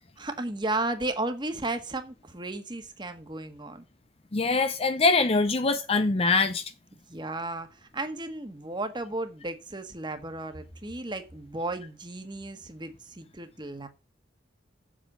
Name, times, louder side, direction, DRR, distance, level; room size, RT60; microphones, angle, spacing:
voice 1, 0.2-3.8 7.1-13.9, right 2 dB, 25° right, 1.5 m, -34 dB
voice 2, 4.3-6.6, left 3 dB, 35° left, 0.6 m, -23 dB
7.5 x 7.2 x 7.5 m
head